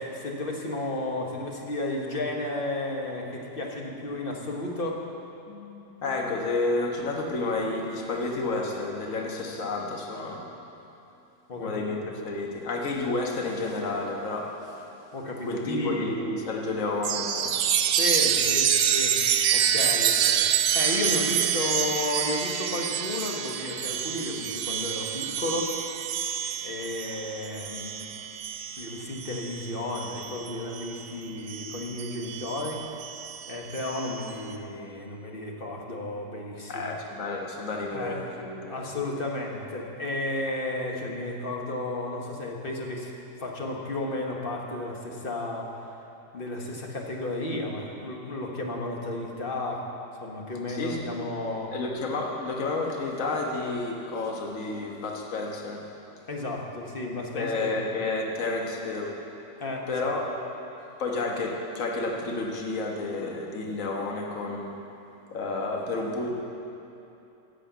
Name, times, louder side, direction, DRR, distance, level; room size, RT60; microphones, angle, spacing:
voice 1, 0.0-5.1 11.5-11.7 15.1-16.2 17.9-19.2 19.5-25.8 26.6-28.1 28.8-32.8 33.5-36.9 37.9-38.2 38.7-43.1 43.4-45.7 46.3-49.8 50.2-51.7 56.3-57.8 59.6-59.9, left 2 dB, 35° left, 0 dB, 1.2 m, -33 dB
voice 2, 5.5-10.5 11.6-14.5 15.4-17.7 36.7-38.7 50.7-51.1 51.7-55.9 57.3-59.2 59.9-60.3 61.0-64.8 65.3-66.3, left 3 dB, 50° left, 0 dB, 1.5 m, -30 dB
Chime, 17.0-31.0 31.5-34.3, right 9 dB, 75° right, 1.1 m, -27 dB
11.5 x 6.4 x 8.1 m, 2.9 s
omnidirectional pair, 1.8 m